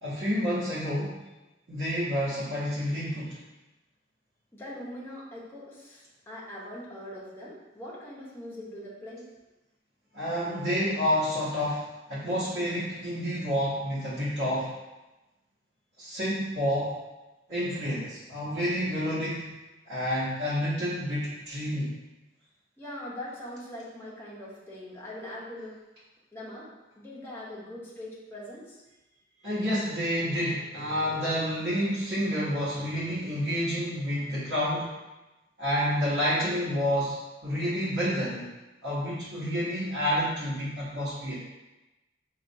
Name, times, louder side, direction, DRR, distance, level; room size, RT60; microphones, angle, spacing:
voice 1, 0.0-1.2 1.7-3.4 10.1-11.8 12.1-14.7 16.0-16.9 17.5-19.5 19.9-21.9 29.4-34.9 35.6-37.1 37.4-38.5 38.8-41.3, equal, 85° right, -12 dB, 0.9 m, -29 dB
voice 2, 4.5-9.2 22.8-25.8 26.3-26.7 27.0-28.8, left 1 dB, 15° left, -6 dB, 0.8 m, -41 dB
4.1 x 2.3 x 2.6 m, 1.0 s
head